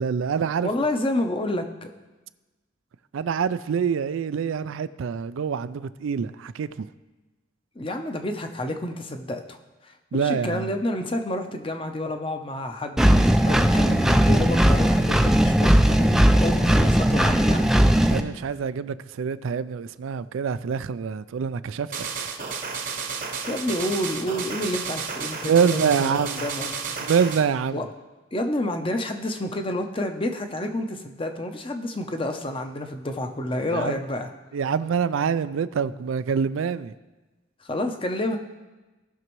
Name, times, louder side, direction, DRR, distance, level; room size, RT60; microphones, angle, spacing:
voice 1, 0.0-0.7 3.1-6.9 10.1-10.7 18.1-22.1 25.4-26.4 27.0-27.8 33.7-34.0 34.5-36.9, right 6 dB, 80° right, 0.4 m, -25 dB
voice 2, 0.6-1.9 7.7-9.6 9.8-17.9 23.5-26.8 27.7-27.8 28.3-34.3 37.6-38.4, left 1 dB, 25° left, 0.7 m, -29 dB
Engine, 13.0-18.2, equal, ahead, 0.3 m, -18 dB
sound 1, 21.9-27.4, right 5 dB, 45° right, 0.9 m, -32 dB
17.5 x 6.1 x 3.1 m
head